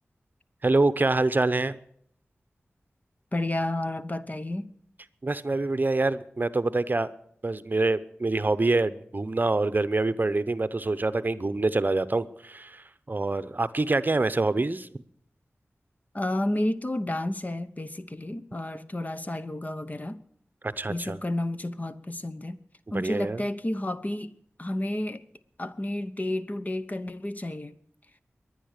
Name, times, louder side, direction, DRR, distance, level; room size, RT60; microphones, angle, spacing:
voice 1, 0.6-1.8 5.2-7.1 7.4-14.9 20.6-21.2 22.9-23.4, right 2 dB, 40° right, 0.8 m, -26 dB
voice 2, 3.3-4.7 16.1-20.2 20.9-22.6 22.9-24.3 24.6-25.2 25.6-27.8, left 1 dB, 35° left, 1.0 m, -31 dB
23.0 x 9.6 x 6.6 m
wide cardioid pair, 55°, 5 cm